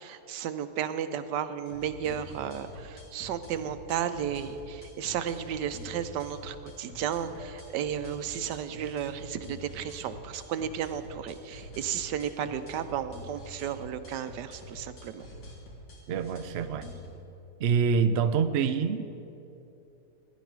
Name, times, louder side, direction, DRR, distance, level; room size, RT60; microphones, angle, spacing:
voice 1, 0.0-15.2, right 9 dB, 90° right, 11 dB, 1.3 m, -33 dB
sound 1, 1.7-17.1, left 1 dB, 75° left, 3.0 m, -46 dB
voice 2, 16.1-16.9 17.6-19.1, right 6 dB, 70° right, 9 dB, 0.6 m, -26 dB
17.5 x 10.5 x 4.7 m, 2.8 s
omnidirectional pair, 1.8 m